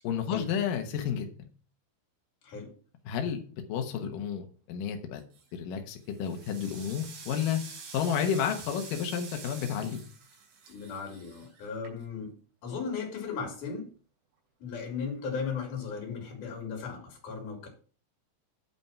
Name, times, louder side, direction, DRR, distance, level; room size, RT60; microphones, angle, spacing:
voice 1, 0.0-1.3 3.1-5.2 5.5-7.6 7.9-10.0, left 8 dB, 85° left, 4 dB, 1.9 m, -31 dB
sound 1, 5.2-5.6 6.0-12.3, right 5 dB, 70° right, 5.0 m, -47 dB
voice 2, 10.7-12.3 12.6-13.9 14.6-17.7, left 5 dB, 45° left, 2 dB, 3.8 m, -36 dB
9.8 x 5.6 x 5.7 m, 0.39 s
omnidirectional pair, 5.6 m